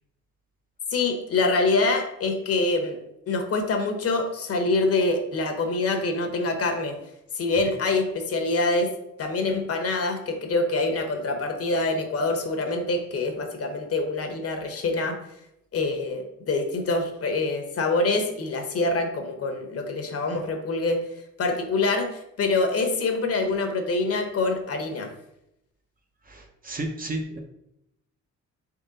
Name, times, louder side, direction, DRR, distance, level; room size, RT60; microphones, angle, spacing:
voice 1, 0.9-3.0 3.3-7.0 7.3-8.9 9.2-15.2 15.7-21.0 21.4-25.1, left 3 dB, 50° left, 5 dB, 0.9 m, -25 dB
voice 2, 26.2-27.4, right 1 dB, 30° right, 3 dB, 0.7 m, -33 dB
3.7 x 3.2 x 4.0 m, 0.82 s
cardioid pair, 90°, 30 cm